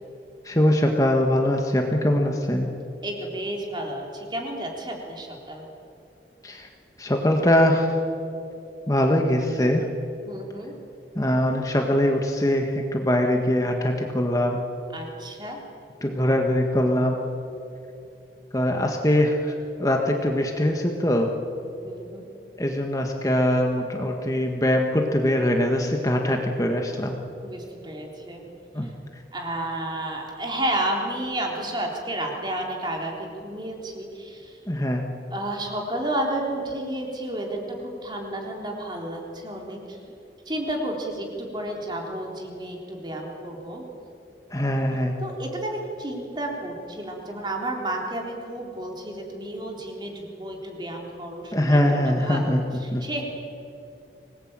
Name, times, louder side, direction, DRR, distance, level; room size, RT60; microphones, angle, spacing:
voice 1, 0.4-2.7 6.4-6.7 7.0-8.0 8.9-9.9 11.1-14.6 16.0-17.2 18.5-21.3 22.6-27.2 28.7-28.9 34.7-35.0 44.5-45.2 51.5-52.6 52.9-53.0, left 1 dB, 20° left, 2 dB, 1.6 m, -22 dB
voice 2, 3.0-5.7 10.3-10.7 14.9-15.6 21.8-22.3 27.4-28.4 29.3-34.6 35.3-40.0 40.5-43.8 45.2-53.2, right 1 dB, 25° right, 0 dB, 3.8 m, -31 dB
25.5 x 19.5 x 9.0 m, 2.7 s
head